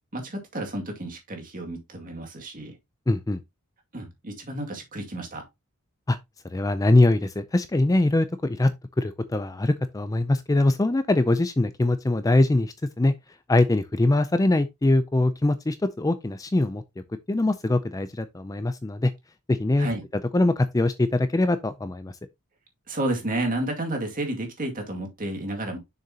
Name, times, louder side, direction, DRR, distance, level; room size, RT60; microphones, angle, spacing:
voice 1, 0.1-2.8 3.9-5.4 19.8-20.0 22.9-25.8, right 1 dB, 40° right, 2.2 m, -31 dB
voice 2, 3.1-3.4 6.1-6.2 6.4-8.7 9.0-13.1 13.5-16.8 17.3-19.1 19.5-19.9 20.3-22.1, left 2 dB, 15° left, 0.4 m, -22 dB
6.9 x 6.6 x 2.8 m
head